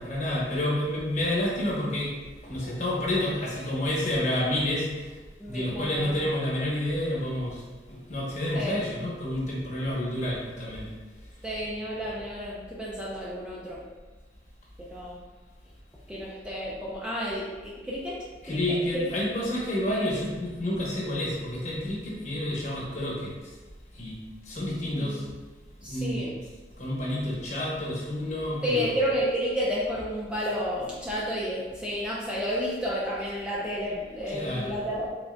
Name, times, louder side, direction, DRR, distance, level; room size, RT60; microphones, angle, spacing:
voice 1, 0.0-5.2 5.5-7.6 7.9-10.9 18.4-23.5 23.9-25.2 25.8-26.3 26.8-29.0 34.3-34.7, left 1 dB, 40° left, -4 dB, 1.0 m, -29 dB
voice 2, 5.4-6.2 8.5-8.8 11.4-13.8 14.8-15.2 16.1-19.1 19.9-20.1 25.0-25.3 25.8-26.4 28.6-35.1, equal, 5° right, -6 dB, 0.5 m, -31 dB
4.7 x 3.8 x 2.2 m, 1.3 s
head